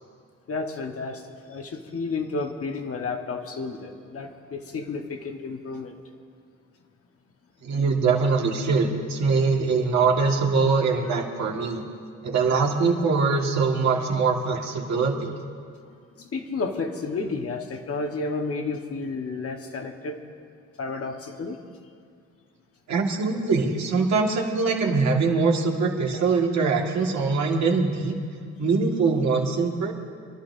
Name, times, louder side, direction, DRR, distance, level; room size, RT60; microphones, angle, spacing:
voice 1, 0.5-6.0 16.2-20.2 20.8-21.6 26.1-26.2, left 3 dB, 50° left, 3 dB, 1.4 m, -31 dB
voice 2, 7.6-11.8 12.2-15.4 22.9-28.1 28.6-29.9, right 4 dB, 65° right, 0 dB, 2.0 m, -23 dB
27.5 x 11.5 x 2.7 m, 2.2 s
cardioid pair, 90°, 30 cm